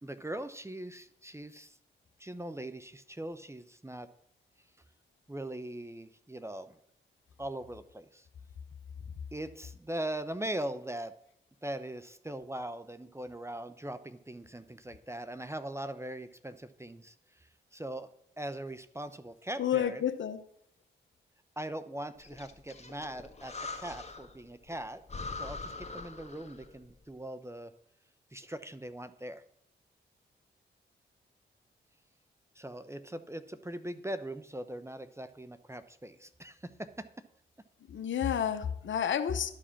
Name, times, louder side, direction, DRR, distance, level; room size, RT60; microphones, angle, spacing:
voice 1, 0.0-1.8 2.2-4.1 5.3-6.7 7.4-8.3 9.3-11.1 11.6-17.1 17.7-18.1 18.4-20.0 21.6-25.0 25.3-27.7 28.3-29.4 32.6-37.1, right 1 dB, 15° right, 11 dB, 0.7 m, -40 dB
voice 2, 19.6-20.4 37.9-39.5, left 9 dB, 65° left, 10 dB, 0.9 m, -30 dB
Breathing, 22.2-24.4 24.7-24.8 25.1-26.8, left 3 dB, 30° left, 1.5 m, -42 dB
11.5 x 5.0 x 5.8 m, 0.72 s
supercardioid pair, 40°, 21 cm